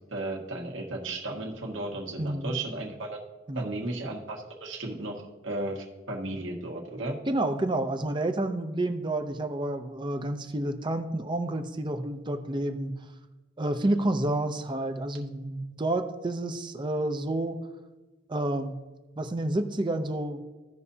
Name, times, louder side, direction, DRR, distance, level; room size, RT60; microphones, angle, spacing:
voice 1, 0.1-3.2 3.5-7.2, right 2 dB, 85° right, -1 dB, 1.6 m, -35 dB
voice 2, 2.2-2.6 3.5-3.7 7.3-12.9 13.6-17.6 18.3-18.8 19.2-20.4, right 1 dB, 25° right, 6 dB, 0.6 m, -29 dB
15.5 x 5.5 x 2.8 m, 1.2 s
head